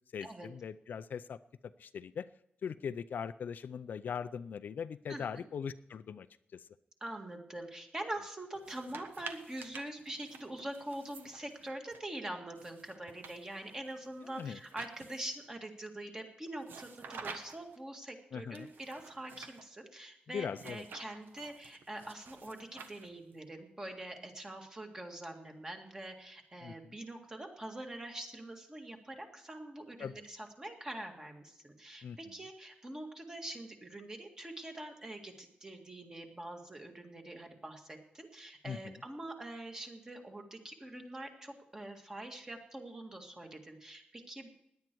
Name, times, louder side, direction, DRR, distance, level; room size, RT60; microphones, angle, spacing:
voice 1, 0.1-1.4 1.8-2.3 2.6-6.3 6.5-6.7 14.4-14.6 18.3-18.7 20.3-20.9 26.6-26.9 30.0-30.2 32.0-32.2 38.7-38.9, left 7 dB, 60° left, 13 dB, 0.4 m, -40 dB
voice 2, 5.1-5.5 7.0-44.5, right 1 dB, 20° right, 3 dB, 1.9 m, -44 dB
sound 1, 8.5-12.0 12.6-15.4 16.6-17.8 18.5-19.6 20.5-23.4, right 5 dB, 80° right, 1.4 m, -50 dB
17.0 x 10.5 x 4.6 m, 0.77 s
wide cardioid pair, 175°, 3 cm